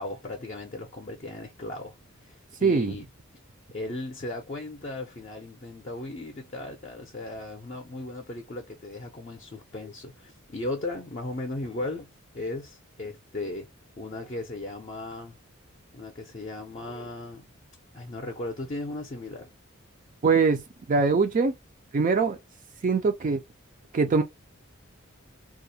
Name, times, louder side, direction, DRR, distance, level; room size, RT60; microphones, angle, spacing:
voice 1, 0.0-3.1 3.7-12.1 12.3-13.7 14.0-15.4 15.9-17.4 17.9-19.5, left 2 dB, 35° left, 0.5 m, -36 dB
voice 2, 2.6-3.0 20.2-20.6 20.9-21.5 21.9-22.4 22.8-23.4 23.9-24.2, right 4 dB, 40° right, 0.4 m, -22 dB
2.3 x 2.1 x 2.7 m
head